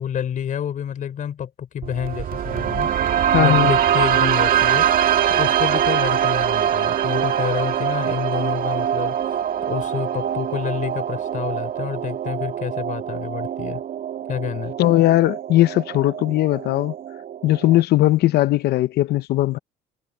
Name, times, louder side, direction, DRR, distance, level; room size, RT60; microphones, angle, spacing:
voice 1, 0.0-2.9 3.4-4.9 5.3-13.8 14.3-14.7, left 9 dB, 50° left, 4.4 m, -28 dB
sound 1, 1.8-17.8, right 9 dB, 55° right, 2.0 m, -23 dB
voice 2, 3.3-3.7 14.8-16.9 17.4-19.6, left 15 dB, 70° left, 0.7 m, -18 dB
cardioid pair, 110°, 17 cm